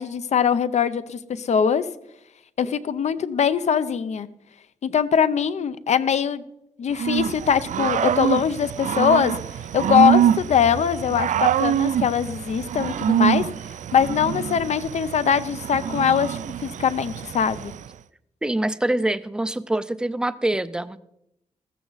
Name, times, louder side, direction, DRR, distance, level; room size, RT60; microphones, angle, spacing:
voice 1, 0.0-1.9 2.6-4.3 4.8-6.4 6.8-9.3 9.7-13.4 13.9-17.7, left 8 dB, 60° left, 13 dB, 0.7 m, -22 dB
Growling / Cricket, 6.9-17.9, right 9 dB, 70° right, 0.4 m, -25 dB
voice 2, 18.4-21.0, right 1 dB, 5° right, 15 dB, 0.4 m, -25 dB
15.0 x 14.0 x 4.0 m, 0.82 s
wide cardioid pair, 180°, 13 cm